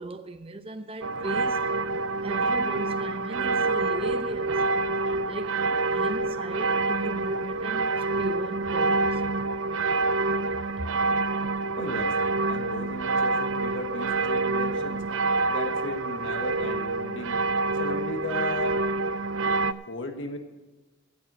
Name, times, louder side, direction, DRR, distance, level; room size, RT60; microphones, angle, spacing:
voice 1, 0.0-1.7 2.2-4.6 5.2-5.6 5.9-9.6 10.8-10.9, right 2 dB, 30° right, 0.7 m, -37 dB
sound 1, 1.0-19.7, right 3 dB, 85° right, 0.5 m, -27 dB
voice 2, 11.7-12.2 12.5-15.1 15.5-17.4 17.7-18.8 19.9-20.4, left 2 dB, 75° left, 1.4 m, -35 dB
16.0 x 7.7 x 6.1 m
head